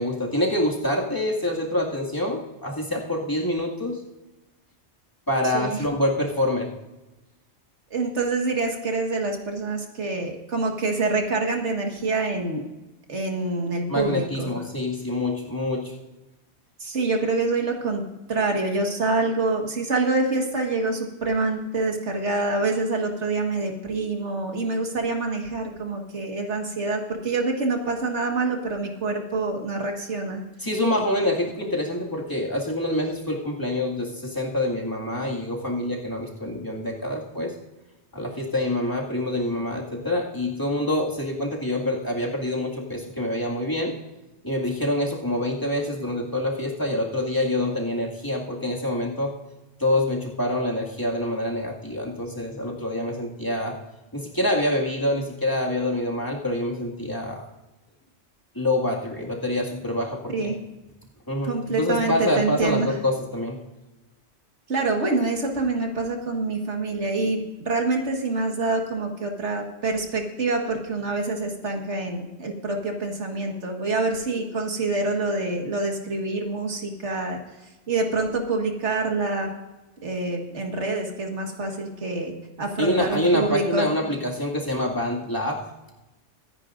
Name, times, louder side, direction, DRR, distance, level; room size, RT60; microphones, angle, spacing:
voice 1, 0.0-4.0 5.3-6.7 13.9-15.9 30.6-37.5 38.1-43.9 44.4-49.3 49.8-53.8 54.1-57.5 58.6-60.5 61.3-63.6 82.8-85.6, left 1 dB, 20° left, -2 dB, 2.0 m, -26 dB
voice 2, 5.5-5.9 7.9-12.6 13.1-14.5 16.8-18.0 18.3-30.4 60.3-60.6 61.5-62.9 64.7-77.4 77.9-79.5 80.0-83.9, right 3 dB, 85° right, 3 dB, 2.0 m, -26 dB
24.0 x 10.0 x 2.5 m, 1.0 s
omnidirectional pair, 1.2 m